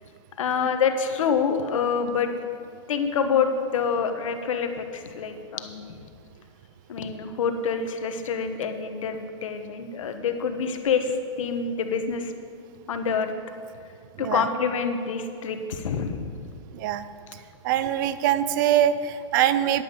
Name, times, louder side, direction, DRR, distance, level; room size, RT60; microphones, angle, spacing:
voice 1, 0.4-2.3 2.9-5.8 6.9-12.3 12.9-13.3 14.2-16.4, left 6 dB, 85° left, 7 dB, 1.0 m, -26 dB
voice 2, 14.2-14.5 16.7-17.1 17.6-19.8, right 11 dB, 40° right, 13 dB, 0.4 m, -23 dB
10.5 x 7.8 x 5.2 m, 2.3 s
supercardioid pair, 155°, 16 cm